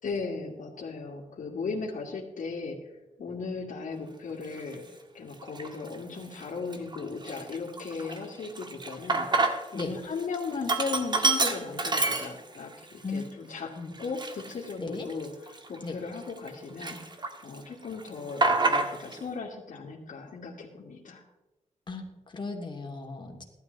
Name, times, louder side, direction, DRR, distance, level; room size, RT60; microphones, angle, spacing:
voice 1, 0.0-2.9 3.2-13.7 14.0-21.2, left 4 dB, 75° left, -5 dB, 2.3 m, -37 dB
Sink (filling or washing), 4.6-4.8 5.4-6.0 6.3-6.4 6.7-9.9 10.2-12.7 13.2-13.3 14.0-16.5 16.8-17.6 17.9-19.2, right 3 dB, 35° right, 1.5 m, -28 dB
voice 2, 21.9-23.4, left 3 dB, 35° left, 1 dB, 2.8 m, -36 dB
17.0 x 12.0 x 4.0 m, 1.0 s
wide cardioid pair, 110°, 14 cm